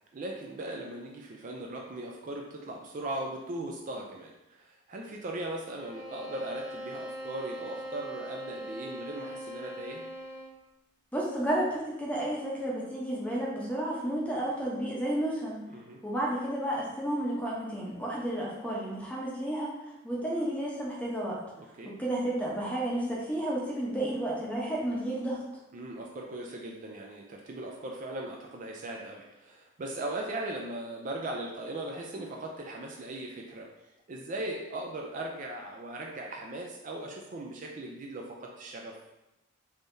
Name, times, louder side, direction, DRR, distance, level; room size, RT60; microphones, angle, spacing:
voice 1, 0.1-10.1 15.7-16.0 21.6-21.9 25.7-33.7 34.1-38.9, right 1 dB, 40° right, 0 dB, 0.4 m, -39 dB
sound 1, 5.8-10.7, equal, 65° left, 1.2 m, -41 dB
voice 2, 11.1-15.6 16.0-19.7 20.0-21.3 22.0-25.4, right 1 dB, 5° left, -5 dB, 0.7 m, -31 dB
3.5 x 3.3 x 2.6 m, 0.92 s
head